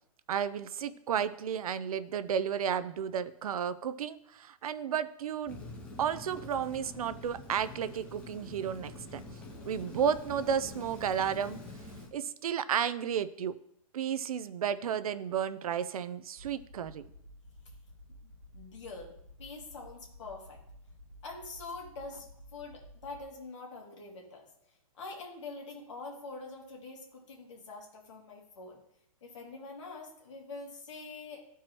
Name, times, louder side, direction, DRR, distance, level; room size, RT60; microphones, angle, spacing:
voice 1, 0.3-5.6 6.0-9.2 9.7-11.6 12.1-13.6 13.9-17.0, right 8 dB, 85° right, 14 dB, 0.5 m, -32 dB
Rain, 5.5-12.1, left 2 dB, 5° left, 0.6 m, -46 dB
sound 1, 16.4-23.2, equal, 40° right, 2.4 m, -53 dB
voice 2, 18.5-19.1 19.4-20.6 21.2-28.8 29.2-31.4, left 3 dB, 55° left, -1 dB, 2.4 m, -45 dB
13.5 x 4.6 x 3.0 m, 0.71 s
hypercardioid pair, 175°, 18 cm